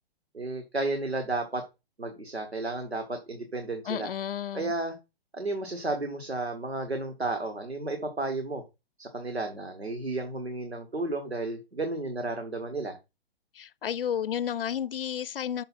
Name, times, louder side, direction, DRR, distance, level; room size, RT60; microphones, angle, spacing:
voice 1, 0.3-1.6 2.0-4.1 4.5-5.0 5.3-8.6 9.0-13.0, right 2 dB, 90° right, 1.7 m, -32 dB
voice 2, 3.8-4.7 13.5-15.6, left 9 dB, 60° left, 0.7 m, -32 dB
7.2 x 6.5 x 4.2 m
figure-of-eight pair, 120°, 31 cm